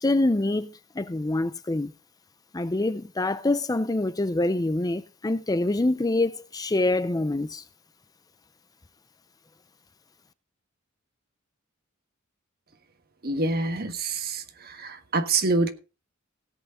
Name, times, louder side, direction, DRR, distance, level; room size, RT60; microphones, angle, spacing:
voice 1, 0.0-1.9 2.5-7.6, left 2 dB, 20° left, 0.5 m, -25 dB
voice 2, 13.2-14.4 14.8-15.7, right 3 dB, 50° right, 1.4 m, -26 dB
17.5 x 8.2 x 3.8 m
head